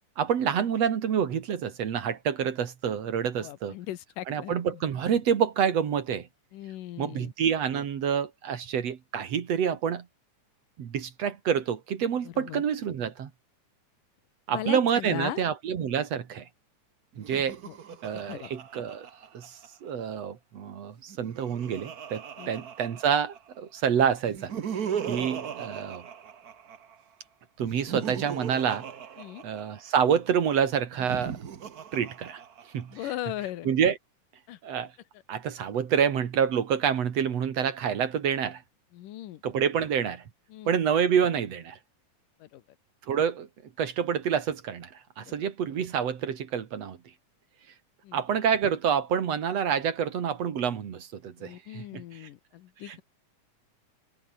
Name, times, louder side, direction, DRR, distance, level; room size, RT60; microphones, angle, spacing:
voice 1, 0.2-3.8 4.3-6.3 7.0-10.1 10.8-13.3 14.5-16.5 17.2-17.6 18.0-19.1 19.3-26.1 27.6-28.9 29.4-31.4 31.9-32.4 32.7-33.1 33.6-34.0 34.6-34.9 35.3-38.6 39.4-40.2 40.7-41.8 43.1-43.5 43.8-47.0 48.1-52.3 52.8-53.0, right 8 dB, 55° right, 2.8 m, -28 dB
voice 2, 3.4-4.6 6.5-7.3 12.3-12.6 14.5-15.4 17.6-17.7 18.3-18.5 22.4-22.5 29.2-29.4 32.9-33.7 34.5-34.6 38.9-39.4 40.5-40.7 42.4-42.6 45.3-45.4 48.0-48.2 51.4-53.0, left 13 dB, 90° left, 2.8 m, -38 dB
Laughter, 17.1-19.9 21.0-23.6 24.2-27.0 27.6-30.0 30.9-33.0, right 8 dB, 85° right, 0.8 m, -38 dB
omnidirectional pair, 3.7 m